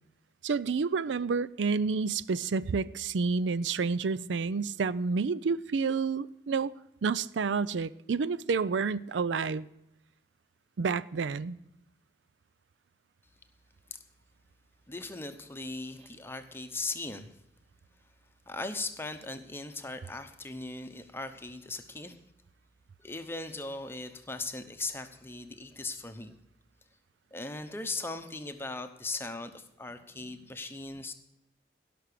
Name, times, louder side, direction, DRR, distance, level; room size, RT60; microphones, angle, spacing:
voice 1, 0.4-6.7 7.0-9.7 10.8-11.6, right 5 dB, 85° right, 0.4 m, -29 dB
voice 2, 14.9-17.3 18.5-22.2 23.0-26.4 27.3-31.1, left 3 dB, 15° left, 0.8 m, -38 dB
16.5 x 6.1 x 6.7 m
head